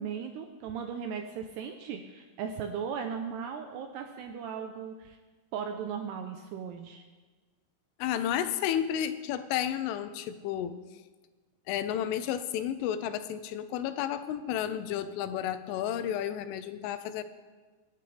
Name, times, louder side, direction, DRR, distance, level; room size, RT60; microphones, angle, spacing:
voice 1, 0.0-5.2 5.5-7.0, right 7 dB, 80° right, 5 dB, 2.4 m, -37 dB
voice 2, 8.0-10.8 11.7-17.2, left 10 dB, 90° left, 11 dB, 3.3 m, -32 dB
25.5 x 10.5 x 3.4 m, 1.3 s
omnidirectional pair, 5.6 m